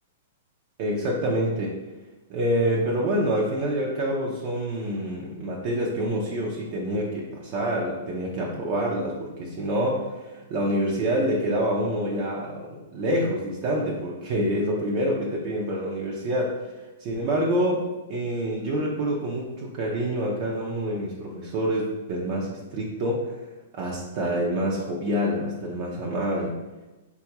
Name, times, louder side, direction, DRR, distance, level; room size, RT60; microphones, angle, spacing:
voice 1, 0.8-1.7 2.3-16.6 17.0-17.8 18.1-26.5, equal, 45° right, -3 dB, 0.5 m, -27 dB
3.8 x 2.3 x 2.9 m, 1.1 s
hypercardioid pair, 135°, 0 cm